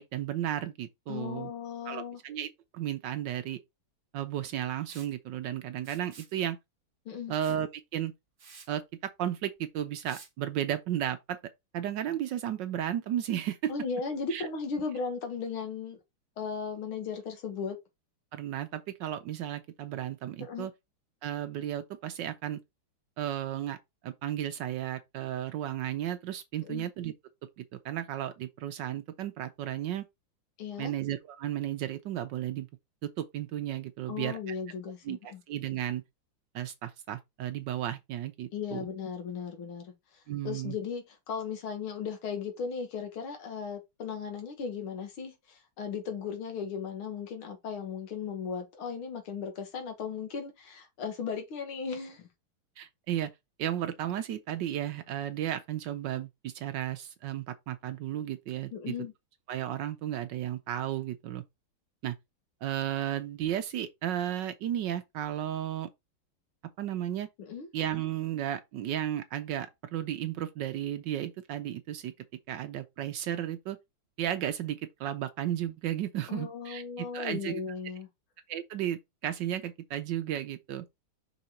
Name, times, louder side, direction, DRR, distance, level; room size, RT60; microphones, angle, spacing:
voice 1, 0.0-1.5 1.9-3.6 4.1-6.6 7.3-8.1 8.7-11.4 11.7-13.7 14.3-14.5 18.3-20.7 21.2-22.6 23.2-23.8 24.0-27.1 27.6-30.1 30.8-32.7 33.0-34.5 35.0-36.0 36.5-38.8 40.3-40.7 52.8-53.3 53.6-58.9 59.5-61.4 62.0-62.1 62.6-65.9 66.8-67.3 67.7-72.1 72.5-73.8 74.2-77.6 78.5-80.8, right 11 dB, 70° right, 1.1 m, -34 dB
voice 2, 1.1-2.2 7.1-7.3 13.7-16.0 16.4-17.8 20.4-20.7 26.6-26.9 30.6-30.9 34.1-35.4 38.5-52.3 58.7-59.1 67.4-67.7 76.3-78.1, left 6 dB, 80° left, 2.3 m, -36 dB
Liquid, 4.9-5.1 5.8-6.3 7.4-7.6 8.0-8.1 8.4-8.7 10.0-10.3, right 5 dB, 45° right, 0.7 m, -51 dB
5.7 x 3.9 x 4.3 m
omnidirectional pair, 2.3 m